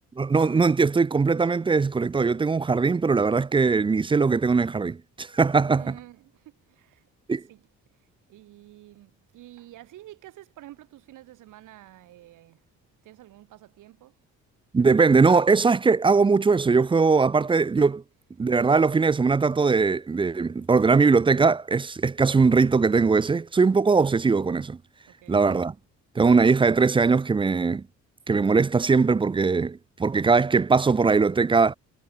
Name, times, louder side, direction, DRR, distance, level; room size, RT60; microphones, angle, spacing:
voice 1, 0.2-5.8 7.3-7.4 14.7-18.0 18.4-24.8 25.3-25.7 26.2-27.8 28.3-31.7, right 4 dB, 15° right, 0.4 m, -20 dB
voice 2, 5.6-7.1 7.5-7.7 7.9-12.6 13.0-14.2 25.1-25.4, right 15 dB, 85° right, 7.3 m, -49 dB
cardioid pair, 90°, 30 cm